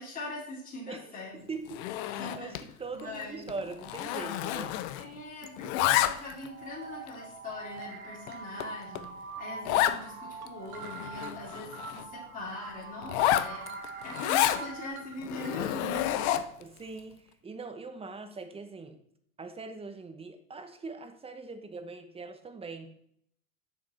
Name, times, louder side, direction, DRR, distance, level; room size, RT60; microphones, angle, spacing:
voice 1, 0.0-1.4 2.0-2.5 2.9-3.4 5.0-9.1 9.4-13.7 14.0-16.3, left 1 dB, 20° left, -6 dB, 2.7 m, -42 dB
voice 2, 0.9-1.8 2.1-4.8 16.6-19.0 19.4-22.9, right 4 dB, 15° right, 7 dB, 1.0 m, -42 dB
Zipper (clothing), 1.7-2.7 3.0-3.2 3.5-5.2 5.4-6.5 7.1-7.2 7.8-7.9 8.3-8.4 8.6-8.7 8.9-9.1 9.6-10.0 10.5-10.6 10.8-12.1 13.0-14.6 15.2-16.6, left 13 dB, 55° left, 0.7 m, -29 dB
sound 1, 4.3-4.4 4.9-5.0 6.2-6.4 7.8-8.9 9.3-9.4 9.9-11.8 12.2-12.3 12.7-12.8 13.1-16.0, right 5 dB, 90° right, 1.3 m, -47 dB
sound 2, 6.5-14.9, right 4 dB, 40° right, 2.0 m, -44 dB
7.1 x 6.4 x 4.2 m, 0.68 s
hypercardioid pair, 105°, 41 cm